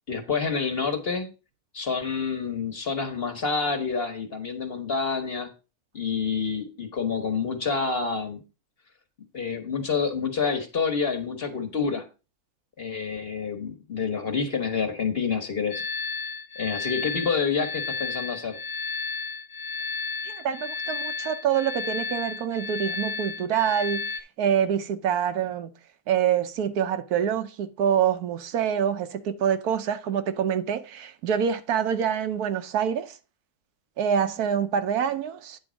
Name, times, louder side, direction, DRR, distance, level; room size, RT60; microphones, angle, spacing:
voice 1, 0.1-1.3 1.7-5.5 5.9-8.4 9.3-12.0 12.8-15.8 16.6-18.6, left 5 dB, 40° left, 1.4 m, -28 dB
sound 1, 15.7-24.2, left 5 dB, 75° left, 1.3 m, -33 dB
voice 2, 20.2-25.7 26.1-33.2 34.0-35.6, right 8 dB, 85° right, 1.3 m, -26 dB
9.0 x 3.9 x 6.2 m
omnidirectional pair, 1.6 m